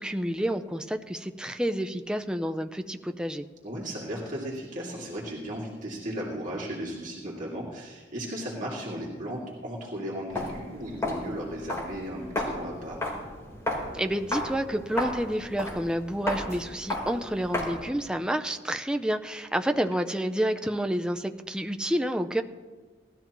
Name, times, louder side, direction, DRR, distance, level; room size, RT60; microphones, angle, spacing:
voice 1, 0.0-3.5 13.9-22.4, equal, 5° right, 6 dB, 0.5 m, -29 dB
voice 2, 3.6-13.0 19.7-19.8, equal, 45° right, -5 dB, 2.5 m, -36 dB
Walk footsteps, 10.3-17.9, left 1 dB, 15° left, 3.7 m, -34 dB
19.0 x 13.0 x 3.0 m, 1.4 s
head